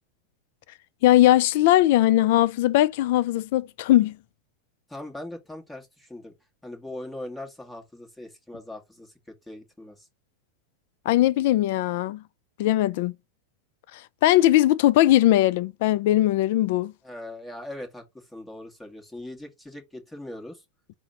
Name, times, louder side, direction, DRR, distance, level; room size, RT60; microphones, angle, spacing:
voice 1, 1.0-4.2 11.1-12.2 12.6-13.1 14.2-16.9, left 14 dB, 65° left, 0.3 m, -20 dB
voice 2, 4.9-6.3 6.6-9.1 9.5-10.1 17.0-20.6, left 1 dB, 5° left, 1.2 m, -40 dB
4.1 x 2.1 x 3.8 m
hypercardioid pair, 110°, 0 cm